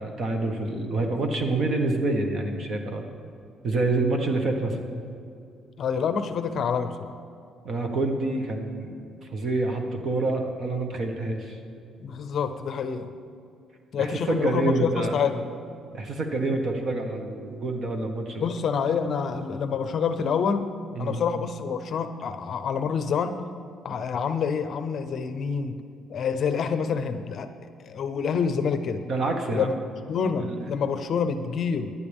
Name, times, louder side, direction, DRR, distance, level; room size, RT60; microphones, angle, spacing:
voice 1, 0.0-3.0 3.6-4.8 7.6-9.0 9.3-11.6 14.0-15.2 15.9-18.5 20.9-21.2 29.1-29.7 30.4-30.6, right 2 dB, 40° right, 3 dB, 1.5 m, -27 dB
voice 2, 5.8-7.1 12.0-13.1 13.9-15.5 18.4-20.7 21.0-23.4 23.8-25.8 26.1-27.5 27.8-29.0 29.5-29.7 30.1-31.9, left 6 dB, 45° left, 9 dB, 0.7 m, -27 dB
18.5 x 11.0 x 3.6 m, 2.5 s
cardioid pair, 145°, 0 cm